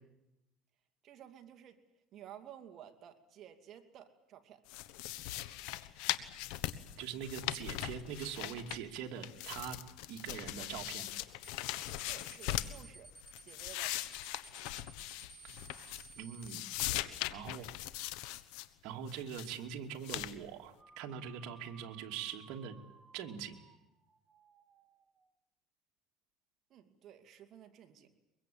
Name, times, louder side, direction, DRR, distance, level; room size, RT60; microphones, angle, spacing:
voice 1, 1.0-1.8 2.1-4.6 12.1-13.1 13.4-14.1 26.7-28.1, right 10 dB, 45° right, 7 dB, 2.5 m, -54 dB
sound 1, 4.7-9.0 9.2-12.8 13.2-16.2 16.4-18.7 19.1-19.6 20.0-20.3, left 15 dB, 80° left, 1.2 m, -40 dB
voice 2, 7.0-9.8 10.1-11.1 16.2-16.8 17.3-17.7 18.8-22.7 23.1-23.6, right 8 dB, 65° right, 3 dB, 2.7 m, -43 dB
sound 2, 11.4-11.6 11.9-16.6, right 2 dB, 5° left, 3.5 m, -55 dB
sound 3, 20.8-25.3, right 5 dB, 30° right, 2.5 m, -62 dB
23.0 x 23.0 x 8.7 m, 0.94 s
cardioid pair, 130°, 0 cm